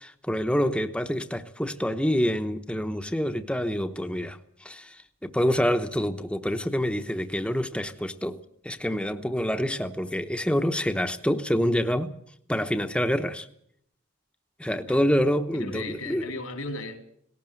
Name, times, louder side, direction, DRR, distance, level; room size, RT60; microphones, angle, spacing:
voice 1, 0.0-8.4 8.6-12.1 12.5-13.5 14.6-16.3, equal, 5° left, 0.9 m, -27 dB
voice 2, 15.5-17.0, left 2 dB, 85° left, 3.6 m, -36 dB
19.0 x 18.0 x 7.8 m
head